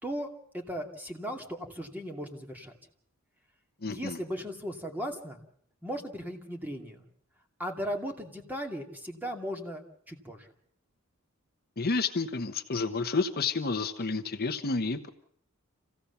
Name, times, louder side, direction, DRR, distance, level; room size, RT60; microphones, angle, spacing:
voice 1, 0.0-2.7 3.9-5.4 5.8-7.1 7.6-9.8 10.1-10.5, equal, 10° right, 3 dB, 2.5 m, -37 dB
voice 2, 3.8-4.2 11.8-15.1, left 4 dB, 45° left, 8 dB, 1.0 m, -30 dB
27.0 x 16.0 x 7.0 m, 0.68 s
head